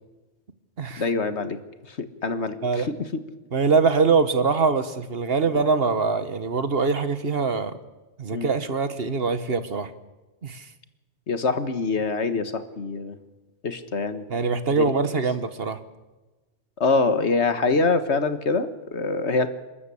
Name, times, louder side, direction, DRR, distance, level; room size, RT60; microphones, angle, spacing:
voice 1, 1.0-3.2 5.4-5.6 8.3-8.5 11.3-13.2 13.6-14.3 14.7-14.9 16.8-19.5, left 3 dB, 75° left, 10 dB, 1.8 m, -25 dB
voice 2, 3.5-7.7 8.2-9.9 10.4-10.6 14.3-15.8, right 4 dB, 60° right, 12 dB, 1.5 m, -23 dB
29.0 x 13.5 x 8.5 m, 1.2 s
omnidirectional pair, 1.2 m